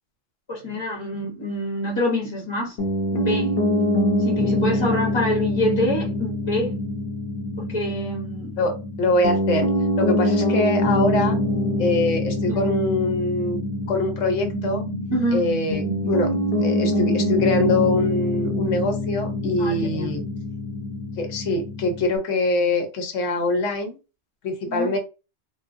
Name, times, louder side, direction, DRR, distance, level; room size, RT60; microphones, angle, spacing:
voice 1, 0.5-2.8 3.1-3.5 4.2-6.7 7.6-8.6 12.5-12.7 15.1-15.5 19.6-20.1 24.7-25.0, left 1 dB, 25° left, 0.8 m, -26 dB
Piano, 2.8-22.2, left 1 dB, 55° left, 0.8 m, -25 dB
voice 2, 8.6-9.7 10.0-11.4 11.8-13.6 13.9-14.8 15.3-16.3 16.6-20.2 21.2-24.0 24.4-25.0, left 2 dB, 80° left, 1.1 m, -23 dB
sound 1, 14.4-18.3, right 3 dB, 50° right, 0.5 m, -32 dB
3.7 x 2.1 x 2.5 m
omnidirectional pair, 1.3 m